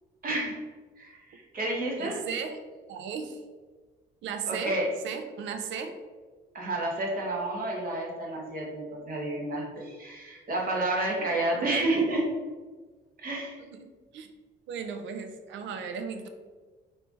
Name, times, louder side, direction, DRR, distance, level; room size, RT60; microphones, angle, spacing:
voice 1, 0.2-0.6 1.0-2.2 4.5-4.9 6.5-12.4 13.2-13.6, right 2 dB, 50° right, -2 dB, 1.1 m, -30 dB
voice 2, 2.0-2.6 2.9-3.4 4.2-4.8 5.0-6.0 11.2-11.8 13.6-14.3 14.7-16.3, right 6 dB, 75° right, 7 dB, 0.5 m, -36 dB
4.3 x 2.6 x 3.6 m, 1.4 s
cardioid pair, 100°, 19 cm